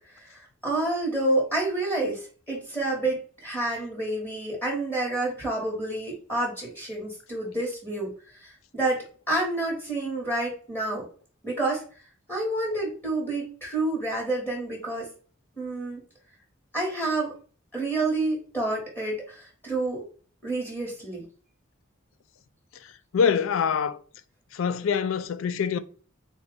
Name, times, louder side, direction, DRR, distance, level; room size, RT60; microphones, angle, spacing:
voice 1, 0.1-11.1 11.4-11.8 12.3-15.1 15.6-16.0 16.7-17.3 17.7-20.0 20.4-21.3, right 2 dB, 10° left, 1.1 m, -29 dB
voice 2, 23.1-24.0 24.5-25.8, left 6 dB, 75° left, 0.4 m, -24 dB
3.8 x 2.3 x 3.7 m
head